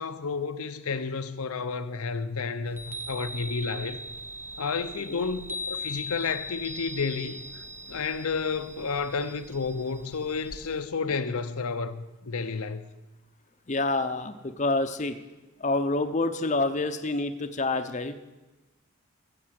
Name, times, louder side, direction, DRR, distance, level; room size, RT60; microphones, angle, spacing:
voice 1, 0.0-4.0 4.6-7.4 7.9-12.9, left 4 dB, 80° left, 0.7 m, -31 dB
Chime, 2.7-10.8, left 1 dB, 10° right, 0.5 m, -40 dB
voice 2, 13.7-15.2 15.6-18.1, left 2 dB, 35° left, 0.7 m, -27 dB
15.0 x 7.3 x 7.6 m
head